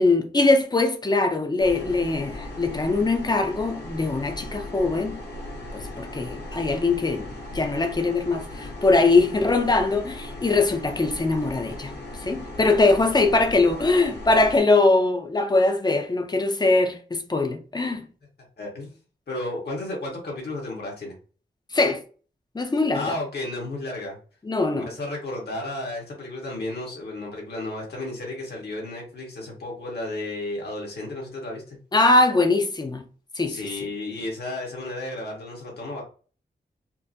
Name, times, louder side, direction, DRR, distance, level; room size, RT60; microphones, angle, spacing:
voice 1, 0.0-5.2 5.7-11.9 12.2-18.1 21.7-22.0 22.5-23.2 24.4-24.9 31.9-33.0 33.4-33.7, left 3 dB, 25° left, 0.6 m, -22 dB
sound 1, 1.6-14.6, left 1 dB, 90° left, 1.2 m, -37 dB
voice 2, 18.6-19.0 19.3-21.1 22.9-24.2 24.7-31.8 33.5-36.0, left 2 dB, 75° left, 1.5 m, -33 dB
4.4 x 2.1 x 2.8 m
wide cardioid pair, 110°, 17 cm